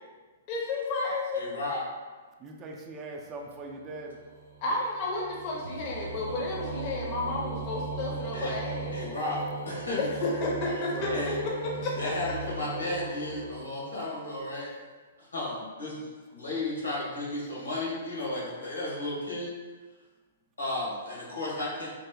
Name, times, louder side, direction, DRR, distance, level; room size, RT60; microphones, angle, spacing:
voice 1, 0.5-1.5 4.6-9.0 10.0-12.0 12.3-12.4, left 2 dB, 40° left, -2 dB, 0.7 m, -32 dB
voice 2, 1.3-1.8 8.3-8.6 8.9-9.4 9.6-10.0 11.1-11.4 12.0-14.7 15.2-19.5 20.6-21.9, left 2 dB, 85° left, -6 dB, 1.5 m, -34 dB
voice 3, 2.4-4.2 10.9-11.3, right 3 dB, 25° right, 1 dB, 0.4 m, -40 dB
sound 1, 3.3-14.3, right 3 dB, 85° right, 0.6 m, -38 dB
3.3 x 2.1 x 3.6 m, 1.3 s
figure-of-eight pair, 120°, 0 cm